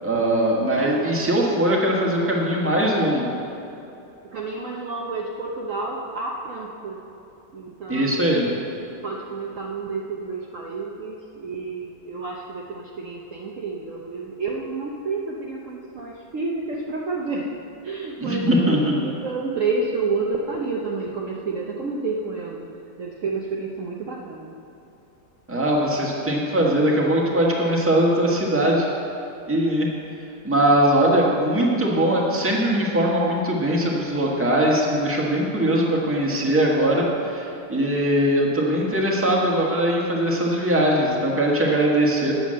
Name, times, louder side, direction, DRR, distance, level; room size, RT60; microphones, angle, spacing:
voice 1, 0.0-3.3 7.9-8.4 18.2-19.0 25.5-28.9 29.5-29.9 30.4-42.3, right 1 dB, 10° right, -3 dB, 1.3 m, -21 dB
voice 2, 4.3-7.0 7.5-8.3 9.0-22.6 23.0-24.5, right 3 dB, 55° right, -2 dB, 1.1 m, -30 dB
9.2 x 7.1 x 7.6 m, 2.9 s
omnidirectional pair, 1.9 m